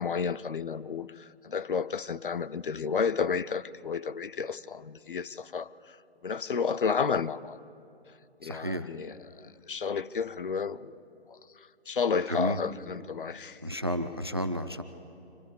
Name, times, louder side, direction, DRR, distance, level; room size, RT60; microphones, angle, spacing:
voice 1, 0.0-6.0 6.2-7.6 8.4-11.0 11.9-13.6, left 6 dB, 55° left, 14 dB, 0.5 m, -31 dB
voice 2, 8.4-8.9 12.3-12.6 13.6-14.8, equal, 25° right, 10 dB, 0.4 m, -31 dB
25.0 x 15.0 x 7.0 m, 2.7 s
figure-of-eight pair, 145°, 33 cm